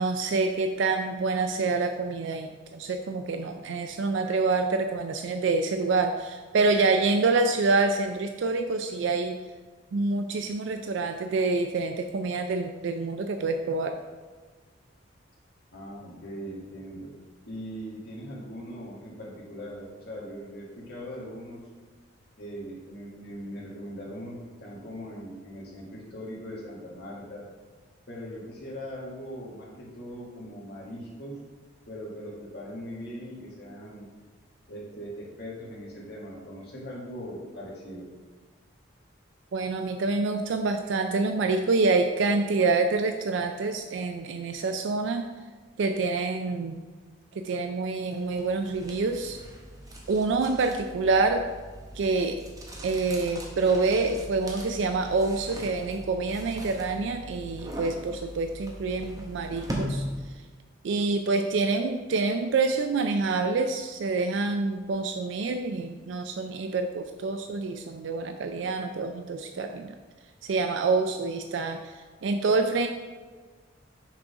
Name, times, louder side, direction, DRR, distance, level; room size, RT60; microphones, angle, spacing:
voice 1, 0.0-9.4 9.9-14.0 39.5-45.2 45.8-46.8 47.3-49.4 50.1-51.4 51.9-52.4 52.8-60.1 60.8-69.9 70.4-72.9, right 3 dB, 65° right, 6 dB, 0.4 m, -27 dB
voice 2, 15.7-17.1 17.5-21.6 22.4-27.4 28.1-31.4 31.9-34.1 34.7-38.1, equal, 55° left, -5 dB, 1.7 m, -40 dB
sound 1, 48.1-60.5, equal, 15° right, 0.8 m, -40 dB
6.2 x 3.7 x 4.9 m, 1.4 s
head